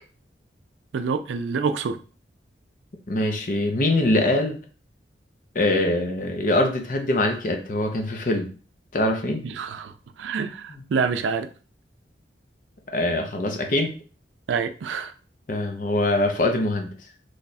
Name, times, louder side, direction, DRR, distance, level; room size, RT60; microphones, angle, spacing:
voice 1, 0.9-2.0 9.4-11.5 14.5-15.1, right 5 dB, 85° right, 0.4 m, -27 dB
voice 2, 3.1-4.6 5.5-8.5 8.9-9.4 12.9-13.9 15.5-16.9, left 1 dB, 45° left, 0.7 m, -23 dB
3.2 x 2.3 x 4.0 m
head